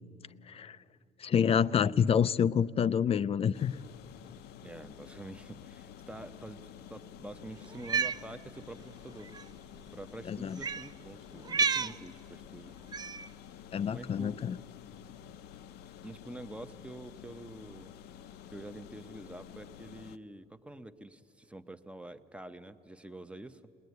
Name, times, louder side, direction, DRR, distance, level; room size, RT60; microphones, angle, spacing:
voice 1, 1.2-3.7 10.3-10.6 13.7-14.6, left 7 dB, 35° left, 0.5 m, -27 dB
sound 1, 3.5-20.2, left 9 dB, 80° left, 0.7 m, -50 dB
voice 2, 4.6-6.6 6.9-9.3 9.9-12.7 13.9-14.4 16.0-17.9 18.5-23.6, right 1 dB, 5° right, 0.9 m, -47 dB
Cat, 7.7-8.2 9.3-9.4 10.6-10.9 11.4-12.0 12.9-13.3, right 5 dB, 25° right, 0.4 m, -30 dB
21.0 x 19.5 x 9.4 m
cardioid pair, 110°, 17 cm